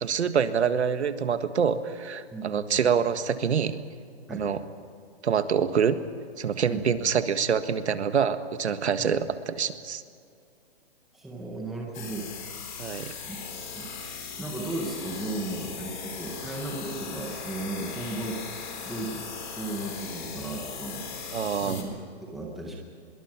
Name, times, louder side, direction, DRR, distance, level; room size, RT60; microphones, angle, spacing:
voice 1, 0.0-3.8 4.3-4.6 5.2-6.0 6.4-10.0 12.8-13.1 21.3-21.8, right 7 dB, 85° right, 10 dB, 1.7 m, -26 dB
voice 2, 2.3-2.8 4.3-4.5 6.7-6.9 9.0-9.2 11.1-12.3 13.3-13.4 13.8-18.4 18.9-19.3 19.5-21.1 21.6-22.8, right 2 dB, ahead, -2 dB, 0.7 m, -35 dB
sound 1, 11.9-21.8, left 5 dB, 45° left, 4.1 m, -39 dB
25.0 x 22.5 x 6.0 m, 2.4 s
hypercardioid pair, 180°, 33 cm